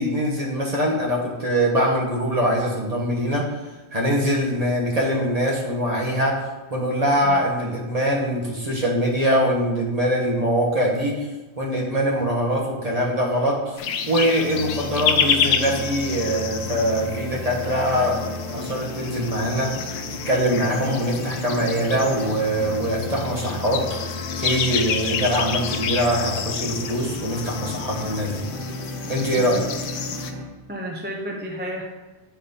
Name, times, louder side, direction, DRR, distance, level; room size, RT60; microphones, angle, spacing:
voice 1, 0.0-3.5 3.9-11.3 11.6-13.8 14.1-18.2 18.5-19.7 20.3-24.1 24.4-28.4 29.1-29.9, equal, 35° right, -2 dB, 1.4 m, -23 dB
sound 1, 13.8-30.3, left 7 dB, 80° left, 0.9 m, -29 dB
sound 2, 14.4-30.4, left 1 dB, 50° right, 1.4 m, -34 dB
voice 2, 30.7-31.8, equal, 10° right, 0 dB, 0.6 m, -32 dB
7.0 x 4.2 x 5.3 m, 1.2 s
omnidirectional pair, 1.2 m